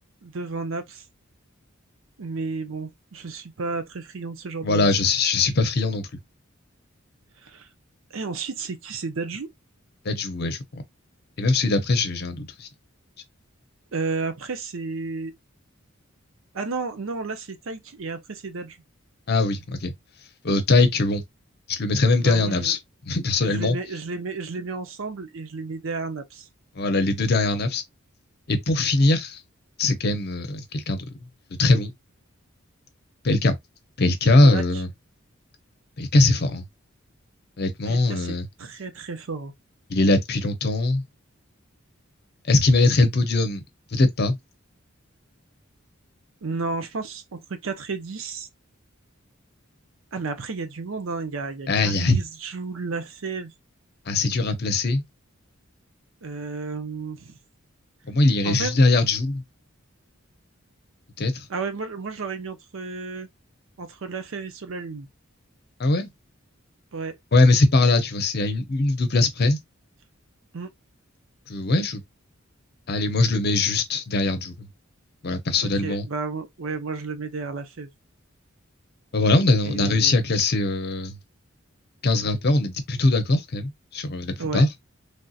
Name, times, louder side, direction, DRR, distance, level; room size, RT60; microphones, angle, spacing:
voice 1, 0.2-1.0 2.2-4.9 7.4-7.7 8.1-9.5 13.9-15.3 16.5-18.8 22.2-22.8 23.4-26.5 34.4-34.6 37.9-39.5 46.4-48.5 50.1-53.5 56.2-57.4 58.4-58.8 61.5-63.3 63.8-65.1 66.9-67.2 70.5-70.7 75.6-77.9 79.6-80.2 84.4-84.7, right 4 dB, 70° right, 0.6 m, -32 dB
voice 2, 4.6-6.1 10.0-10.8 11.4-12.7 19.3-19.9 20.4-21.2 21.7-22.8 23.1-23.8 26.8-27.8 28.5-29.4 29.8-31.1 31.6-31.9 33.2-33.6 34.0-34.9 36.0-36.6 37.6-38.5 39.9-41.0 42.5-43.6 43.9-44.4 51.7-52.2 54.1-55.0 58.1-59.4 61.2-61.4 65.8-66.1 67.3-69.6 71.5-72.0 72.9-74.7 75.2-76.1 79.1-81.2 82.0-84.7, left 2 dB, 50° left, 0.7 m, -21 dB
3.3 x 2.8 x 2.3 m
head